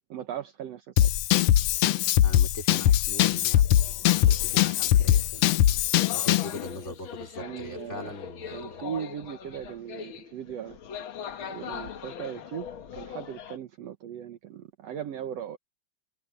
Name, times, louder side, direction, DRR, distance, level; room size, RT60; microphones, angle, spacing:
voice 1, 0.1-1.1 7.4-8.2 8.5-10.8 11.5-12.7 12.9-15.6, right 9 dB, 65° right, 2.0 m, -38 dB
Drum kit / Drum, 1.0-6.5, left 12 dB, 75° left, 1.5 m, -22 dB
voice 2, 2.2-3.7 4.2-5.5 6.1-8.8, left 1 dB, 20° left, 3.8 m, -41 dB
sound 1, 3.5-13.6, left 8 dB, 55° left, 1.7 m, -41 dB
omnidirectional pair, 3.4 m